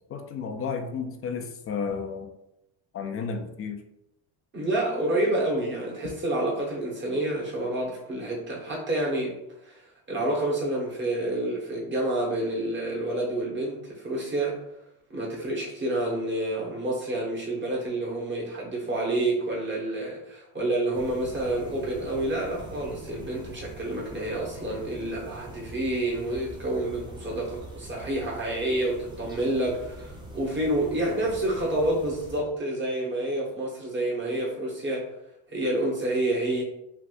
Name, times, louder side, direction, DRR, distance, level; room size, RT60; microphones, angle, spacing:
voice 1, 0.1-2.3 2.9-3.8, left 5 dB, 35° left, 5 dB, 0.4 m, -32 dB
voice 2, 4.5-9.4 9.6-9.8 10.1-14.6 15.1-35.1 35.5-36.6, right 1 dB, 25° right, -2 dB, 1.2 m, -28 dB
sound 1, 20.9-32.4, right 1 dB, 10° right, 0.7 m, -44 dB
3.3 x 2.7 x 2.5 m, 0.84 s
cardioid pair, 110°, 44 cm